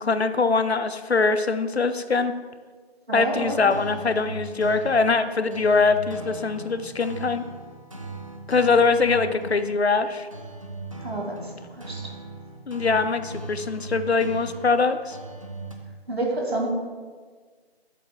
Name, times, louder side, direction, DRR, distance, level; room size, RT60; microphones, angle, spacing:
voice 1, 0.0-2.3 3.1-7.4 8.5-10.3 12.7-15.2, left 4 dB, 90° left, 11 dB, 0.6 m, -22 dB
voice 2, 3.1-3.6 9.3-9.4 11.0-11.4 11.8-12.1 16.1-16.7, right 1 dB, 75° right, 0 dB, 2.0 m, -28 dB
sound 1, 3.4-15.8, right 2 dB, 35° right, 0.6 m, -39 dB
7.8 x 2.8 x 5.9 m, 1.5 s
figure-of-eight pair, 160°, 31 cm